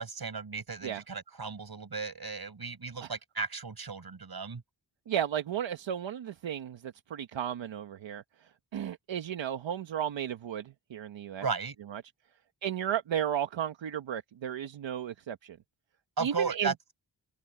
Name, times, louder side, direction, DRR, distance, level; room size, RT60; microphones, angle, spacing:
voice 1, 0.0-4.6 11.4-11.7 16.2-16.7, right 5 dB, 55° right, 6.6 m, -35 dB
voice 2, 5.1-8.2 8.7-11.4 11.9-12.0 12.6-15.6 16.2-16.7, right 10 dB, 85° right, 1.1 m, -34 dB
open air
cardioid pair, 50°, 44 cm